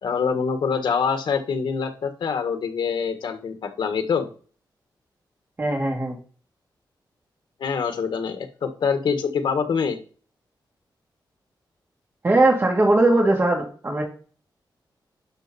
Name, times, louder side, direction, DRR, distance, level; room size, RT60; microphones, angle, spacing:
voice 1, 0.0-4.3 7.6-10.0, left 6 dB, 80° left, 7 dB, 1.5 m, -25 dB
voice 2, 5.6-6.2 12.2-14.0, right 2 dB, 30° right, -1 dB, 2.9 m, -19 dB
11.5 x 5.4 x 4.2 m, 0.40 s
wide cardioid pair, 150°, 8 cm